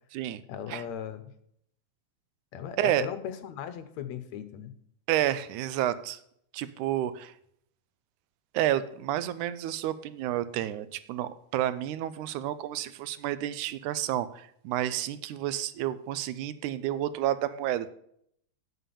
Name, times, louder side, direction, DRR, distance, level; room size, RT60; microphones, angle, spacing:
voice 1, 0.5-1.3 2.5-4.7, left 8 dB, 75° left, 11 dB, 1.9 m, -37 dB
voice 2, 5.1-6.2 6.5-7.3 8.5-17.9, right 12 dB, 85° right, 15 dB, 2.1 m, -30 dB
8.2 x 7.5 x 6.8 m, 0.69 s
omnidirectional pair, 3.5 m